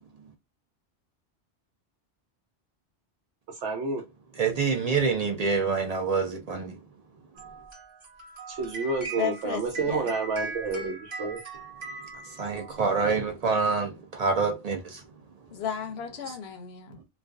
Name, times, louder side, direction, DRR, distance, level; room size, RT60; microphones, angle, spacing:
voice 1, 3.6-4.0 8.5-11.4, right 4 dB, 85° right, 1.0 m, -29 dB
voice 2, 4.4-6.7 12.4-15.0, right 4 dB, 65° right, 0.4 m, -26 dB
sound 1, 7.4-13.2, right 3 dB, 30° right, 0.7 m, -40 dB
voice 3, 9.0-10.1 15.5-17.0, left 8 dB, 65° left, 0.8 m, -34 dB
2.4 x 2.2 x 2.3 m
omnidirectional pair, 1.2 m